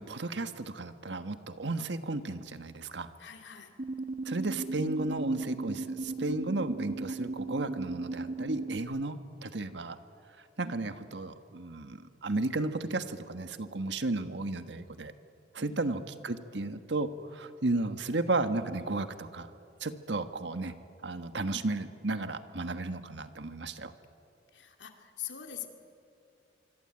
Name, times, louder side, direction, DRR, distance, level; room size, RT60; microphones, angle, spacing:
voice 1, 0.0-3.1 4.2-10.0 10.6-15.1 15.5-19.5 19.8-20.7 21.0-23.9, right 2 dB, 75° right, 9 dB, 1.4 m, -34 dB
voice 2, 3.2-3.7 15.6-15.9 24.5-25.7, left 10 dB, 80° left, 4 dB, 2.8 m, -43 dB
sound 1, 3.8-8.8, right 3 dB, 50° right, 1.3 m, -36 dB
25.5 x 25.0 x 8.9 m, 2.5 s
head